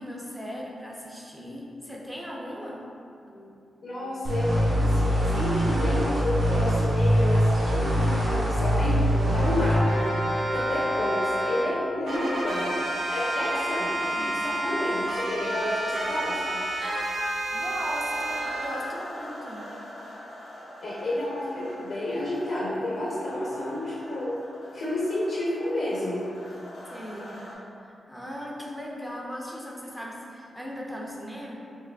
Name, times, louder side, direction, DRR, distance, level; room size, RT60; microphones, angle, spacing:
voice 1, 0.0-2.8 3.2-3.7 14.1-14.4 17.5-19.7 26.9-27.5 27.8-31.5, equal, ahead, -4 dB, 0.4 m, -38 dB
voice 2, 3.8-10.1 10.5-12.7 13.1-16.6 20.8-24.3 24.7-26.3, left 1 dB, 60° left, -8 dB, 0.6 m, -30 dB
sound 1, 4.2-9.8, equal, 55° right, 0.7 m, -23 dB
sound 2, 9.1-11.6 12.1-18.6, right 1 dB, 85° right, 0.8 m, -29 dB
sound 3, 18.1-27.5, left 1 dB, 85° left, 1.3 m, -44 dB
4.7 x 2.9 x 2.2 m, 2.6 s
wide cardioid pair, 175°, 0 cm